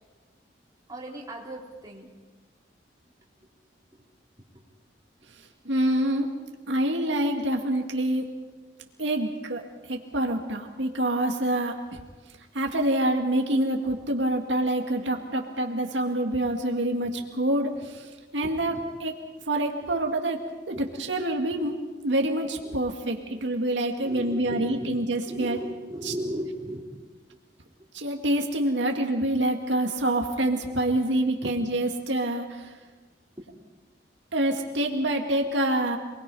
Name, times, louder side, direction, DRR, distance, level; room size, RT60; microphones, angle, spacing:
voice 1, 0.9-2.1 3.9-4.0 4.5-4.6 17.0-17.1 18.4-18.9 20.7-20.9 22.6-22.8 23.3-23.6 24.0-26.8 31.4-31.5 33.4-33.5, equal, 20° right, -3 dB, 3.7 m, -37 dB
voice 2, 5.7-6.3 6.7-8.3 9.0-9.6 9.9-12.0 12.5-18.0 18.3-19.2 19.5-25.6 26.0-26.1 27.9-32.7 34.3-36.0, right 1 dB, 85° right, 2 dB, 2.1 m, -26 dB
27.5 x 21.0 x 5.5 m, 1.3 s
head